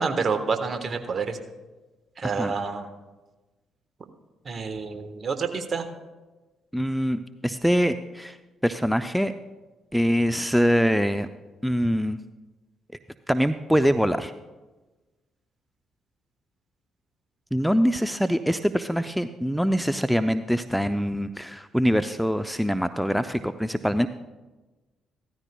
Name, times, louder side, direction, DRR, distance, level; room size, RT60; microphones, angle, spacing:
voice 1, 0.0-1.4 2.2-2.9 4.4-5.9, right 5 dB, 45° right, 8 dB, 1.3 m, -28 dB
voice 2, 2.2-2.5 6.7-8.4 8.6-9.3 9.9-11.3 11.6-12.2 13.3-14.3 17.5-24.1, equal, ahead, 10 dB, 0.5 m, -24 dB
16.0 x 13.5 x 2.3 m, 1.2 s
hypercardioid pair, 45°, 0 cm